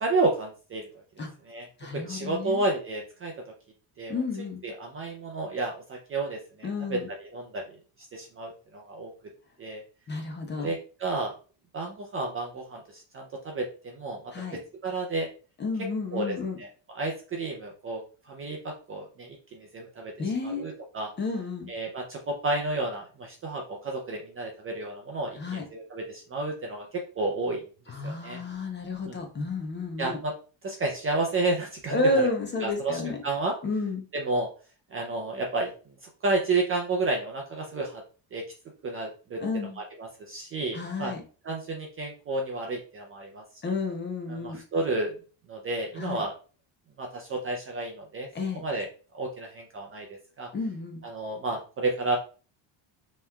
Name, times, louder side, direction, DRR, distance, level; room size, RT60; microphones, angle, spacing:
voice 1, 0.0-0.8 1.5-1.7 1.9-3.3 4.0-7.6 8.1-9.1 9.6-9.8 10.6-11.3 11.7-14.2 14.5-15.3 16.1-16.7 16.9-20.1 20.4-21.1 21.7-26.9 27.2-27.6 28.0-28.4 29.0-29.2 30.0-30.3 30.6-32.3 32.6-33.5 34.1-34.5 34.9-35.7 36.2-38.0 38.3-38.4 38.8-39.4 39.8-41.1 41.4-43.4 44.3-45.1 45.5-46.3 47.0-48.3 48.5-48.9 49.1-50.5 51.0-52.2, right 2 dB, 30° right, 1 dB, 0.4 m, -31 dB
voice 2, 1.8-2.6 4.1-4.6 6.6-7.1 10.1-10.7 14.3-14.6 15.6-16.6 20.2-20.7 21.2-21.7 25.4-25.6 27.9-30.2 31.9-33.2 33.6-34.0 39.4-39.8 40.7-41.2 43.6-44.6 46.0-46.2 48.3-48.6 50.5-51.0, left 3 dB, 25° left, 3 dB, 0.6 m, -31 dB
5.3 x 3.1 x 2.2 m, 0.37 s
cardioid pair, 160°, 50 cm